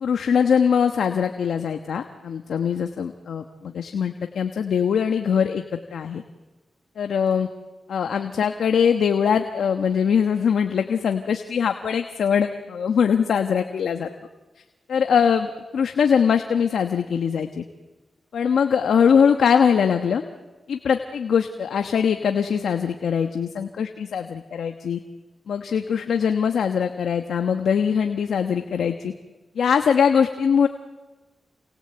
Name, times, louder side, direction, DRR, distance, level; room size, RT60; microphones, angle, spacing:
voice 1, 0.0-5.6 5.9-6.2 7.0-7.5 7.9-14.1 14.9-17.6 18.3-20.2 20.7-25.0 25.5-29.1 29.6-30.7, left 7 dB, 85° left, 6 dB, 1.2 m, -22 dB
29.0 x 26.0 x 7.9 m, 1.2 s
cardioid pair, 55°, 0 cm